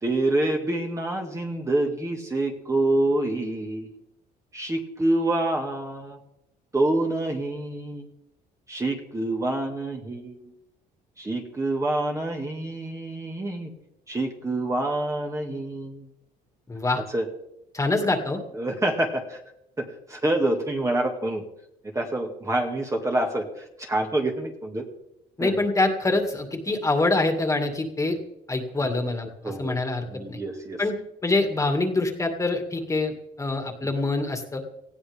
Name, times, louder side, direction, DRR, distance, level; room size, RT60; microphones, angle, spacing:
voice 1, 0.0-4.0 4.5-6.2 6.7-8.1 8.7-10.5 11.2-13.7 14.1-16.1 17.1-17.3 18.5-19.4 19.8-21.4 21.9-24.8 25.4-25.5 29.4-29.8 30.1-30.8, right 2 dB, 20° right, 2 dB, 2.0 m, -27 dB
voice 2, 16.7-17.0 17.7-18.4 25.4-28.2 28.5-30.4 30.8-31.0 31.2-34.6, left 2 dB, 20° left, 4 dB, 2.3 m, -25 dB
19.0 x 15.0 x 3.6 m, 0.82 s
cardioid pair, 110°, 17 cm